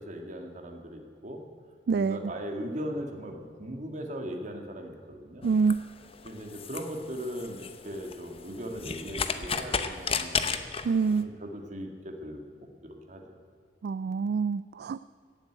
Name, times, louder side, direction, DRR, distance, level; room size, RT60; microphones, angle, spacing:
voice 1, 0.0-1.4 1.9-5.4 6.2-10.6 11.2-13.4, equal, 45° right, 3 dB, 1.9 m, -39 dB
voice 2, 1.9-2.2 5.4-5.8 10.8-11.3 13.8-15.0, right 5 dB, 60° right, 15 dB, 0.3 m, -26 dB
sound 1, 5.4-11.2, left 5 dB, 35° left, 0.8 m, -34 dB
16.0 x 8.1 x 9.3 m, 2.1 s
head